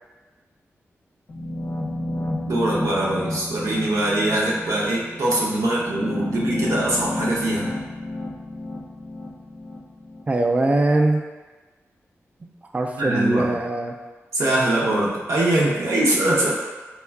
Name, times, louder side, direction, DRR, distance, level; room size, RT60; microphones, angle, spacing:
sound 1, 1.3-10.2, left 1 dB, 50° left, 0.5 m, -31 dB
voice 1, 2.5-7.7 13.0-13.5 14.3-16.5, right 1 dB, 75° right, -5 dB, 0.8 m, -22 dB
voice 2, 10.3-11.2 12.4-13.9, right 2 dB, 25° right, 3 dB, 0.3 m, -21 dB
4.4 x 2.3 x 2.3 m, 1.3 s
wide cardioid pair, 90°, 5 cm